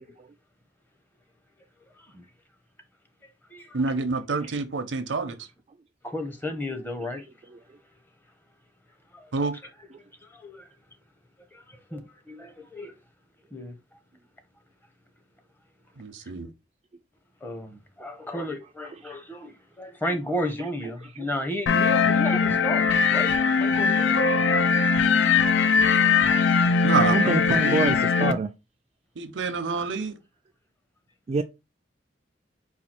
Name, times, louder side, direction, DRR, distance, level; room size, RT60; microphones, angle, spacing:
voice 1, 1.9-2.3 3.2-3.8 6.0-7.2 9.1-9.3 10.2-10.7 11.5-12.9 13.5-13.8 16.2-16.3 17.4-23.3 23.6-24.4, left 1 dB, 10° left, 0.7 m, -34 dB
voice 2, 3.7-5.5 9.3-9.6 16.0-16.5 26.8-27.4 27.6-27.8 29.2-30.2, right 4 dB, 90° right, 0.7 m, -27 dB
sound 1, 21.7-28.3, left 5 dB, 90° left, 0.5 m, -21 dB
voice 3, 27.1-28.5 31.3-31.4, right 4 dB, 35° right, 0.3 m, -25 dB
4.2 x 2.3 x 4.3 m
head